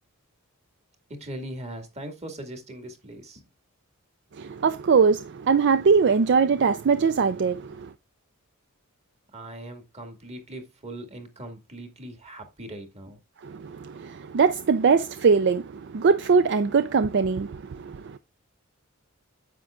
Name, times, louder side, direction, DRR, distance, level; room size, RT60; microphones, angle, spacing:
voice 1, 1.1-3.5 9.3-13.2, right 1 dB, 30° right, 2.0 m, -40 dB
voice 2, 4.4-7.9 13.4-18.2, right 5 dB, 55° right, 0.4 m, -22 dB
9.5 x 7.6 x 2.4 m
head